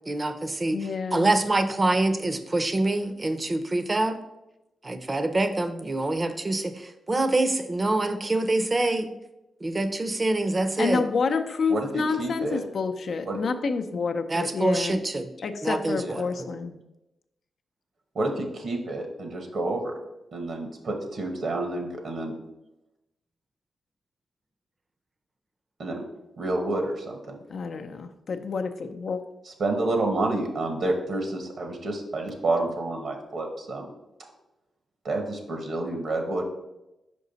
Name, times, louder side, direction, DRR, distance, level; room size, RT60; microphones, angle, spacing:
voice 1, 0.1-0.8 1.1-4.2 4.8-9.1 9.6-11.0 14.3-15.3 15.6-16.5, right 2 dB, 30° right, 9 dB, 0.6 m, -25 dB
voice 2, 0.7-1.3 10.8-15.0 15.4-16.8 27.5-29.2, left 4 dB, 65° left, 6 dB, 0.5 m, -28 dB
voice 3, 11.7-12.6 13.3-13.4 16.0-16.2 18.1-19.9 20.3-22.3 25.8-26.0 26.4-27.4 29.5-33.9 35.0-36.5, right 2 dB, 70° right, 4 dB, 1.0 m, -29 dB
5.3 x 4.8 x 4.0 m, 0.94 s
cardioid pair, 70°, 0 cm